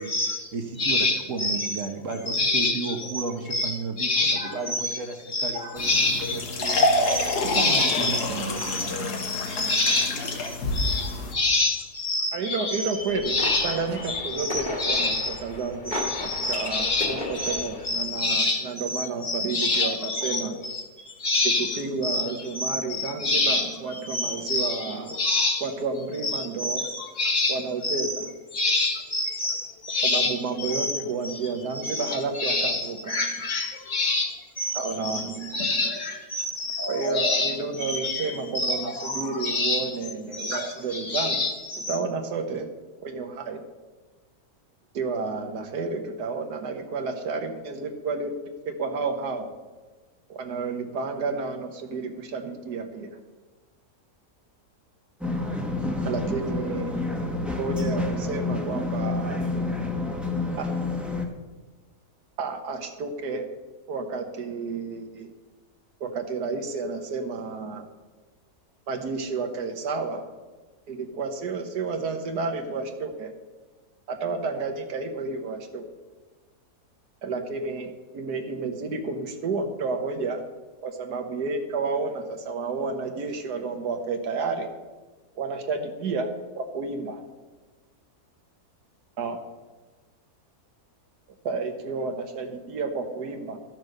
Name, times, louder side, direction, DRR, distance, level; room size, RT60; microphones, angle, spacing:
voice 1, 0.0-0.5 0.8-1.8 2.3-3.2 3.5-5.0 5.3-8.3 8.6-13.8 14.1-15.4 15.9-25.6 26.2-28.3 28.5-31.5 31.8-40.0 40.3-42.0, left 2 dB, 50° left, 2 dB, 1.9 m, -27 dB
voice 2, 0.5-5.9 6.3-6.8 7.4-9.2, right 4 dB, 55° right, 5 dB, 1.3 m, -33 dB
sound 1, 5.8-11.3, left 2 dB, 75° left, 1.8 m, -27 dB
voice 3, 12.3-13.4 13.6-20.6 21.4-25.1 25.6-26.8 27.5-28.3 30.0-33.2 34.7-35.8 36.9-41.4 41.9-42.7 43.0-43.6 44.9-48.4 48.6-49.5 50.3-53.1 56.0-56.9 57.6-59.4 60.6-61.0 62.4-63.5 63.9-65.3 66.0-67.8 68.9-70.3 70.9-73.3 74.1-75.8 77.2-80.4 80.8-84.7 85.4-86.3 86.6-87.2 89.2-89.4 91.4-93.6, right 4 dB, 80° right, 6 dB, 1.6 m, -31 dB
sound 2, 13.0-18.0, left 2 dB, 30° left, 1.5 m, -35 dB
sound 3, 55.2-61.3, left 2 dB, ahead, 0.9 m, -28 dB
12.5 x 6.2 x 6.4 m, 1.3 s
omnidirectional pair, 1.7 m